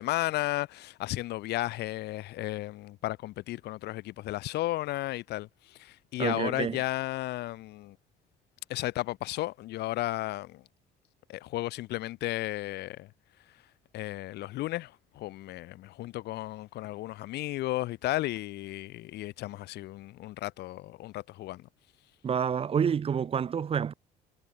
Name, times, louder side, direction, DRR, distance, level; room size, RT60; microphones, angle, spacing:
voice 1, 0.0-8.0 8.7-10.6 11.3-13.1 13.9-21.7, left 17 dB, 80° left, 1.7 m, -34 dB
voice 2, 6.2-6.8 22.2-23.9, right 7 dB, 35° right, 0.8 m, -28 dB
cardioid pair, 110°, 17 cm